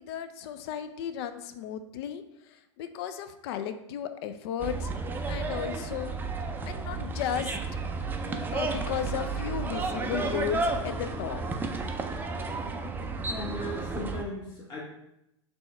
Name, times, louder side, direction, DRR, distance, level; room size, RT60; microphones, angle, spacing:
voice 1, 0.0-4.9 5.3-6.2 6.7-7.6 8.5-11.7, left 9 dB, 55° left, 10 dB, 0.4 m, -35 dB
sound 1, 4.6-14.2, right 3 dB, 10° right, 0.4 m, -32 dB
voice 2, 13.3-14.8, left 1 dB, 25° left, -6 dB, 0.9 m, -37 dB
4.4 x 3.1 x 3.2 m, 0.85 s
hypercardioid pair, 100°, 16 cm